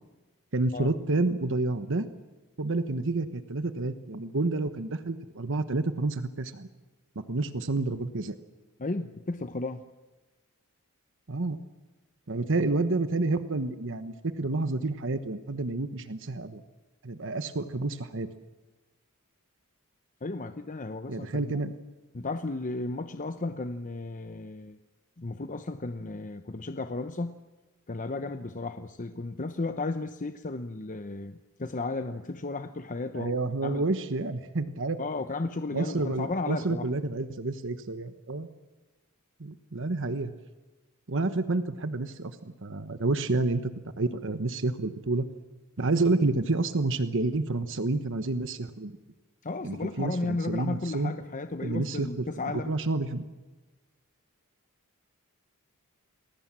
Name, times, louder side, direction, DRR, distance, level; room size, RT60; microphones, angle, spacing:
voice 1, 0.5-2.1 2.6-6.7 7.1-8.3 11.3-11.6 12.3-16.6 17.0-18.3 21.1-21.7 33.1-35.0 35.7-38.5 39.4-40.3 41.1-43.7 44.0-45.2 45.8-48.9 49.6-51.1 51.6-53.3, right 2 dB, 60° right, 10 dB, 1.2 m, -29 dB
voice 2, 8.8-9.8 20.2-21.7 22.1-24.8 25.2-27.4 27.9-33.8 35.0-36.9 49.4-52.7, left 3 dB, 35° left, 9 dB, 0.9 m, -34 dB
28.5 x 21.0 x 7.5 m, 1.2 s
head